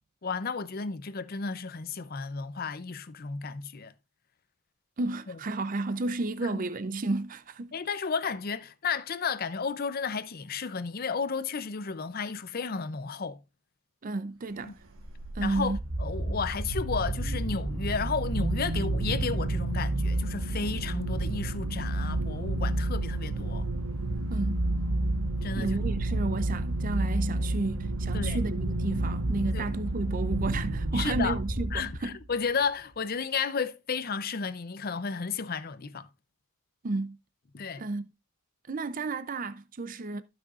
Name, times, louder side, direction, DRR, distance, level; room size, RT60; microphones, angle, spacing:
voice 1, 0.2-3.9 5.3-5.4 6.4-6.6 7.7-13.4 14.6-14.8 15.4-23.7 25.4-25.8 28.1-28.4 29.5-29.7 30.9-31.4 31.7-36.1 37.5-37.8, left 5 dB, 40° left, 0.6 m, -33 dB
voice 2, 5.0-7.8 14.0-14.8 15.3-15.8 24.3-24.7 25.6-32.2 36.8-37.2 37.8-38.0 38.7-40.2, right 2 dB, 40° right, 0.5 m, -32 dB
sound 1, 14.9-32.2, right 2 dB, 70° right, 1.2 m, -30 dB
14.5 x 6.1 x 2.5 m
head